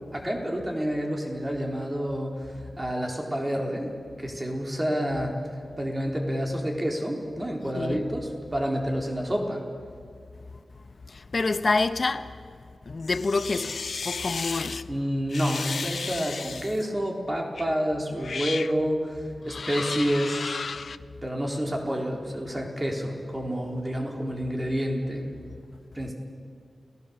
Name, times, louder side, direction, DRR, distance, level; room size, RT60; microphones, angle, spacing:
voice 1, 0.1-3.9 4.2-5.3 5.8-9.6 14.9-20.6 21.2-25.3 25.9-26.1, equal, 20° right, 3.9 m, -29 dB
voice 2, 11.1-12.3 12.9-14.9, left 3 dB, 45° left, 1.1 m, -27 dB
sound 1, 13.0-14.8 15.3-16.9 17.6-17.7 18.2-18.8 19.5-21.0, left 5 dB, 65° left, 0.6 m, -34 dB
29.5 x 19.0 x 7.1 m
wide cardioid pair, 120°, 0 cm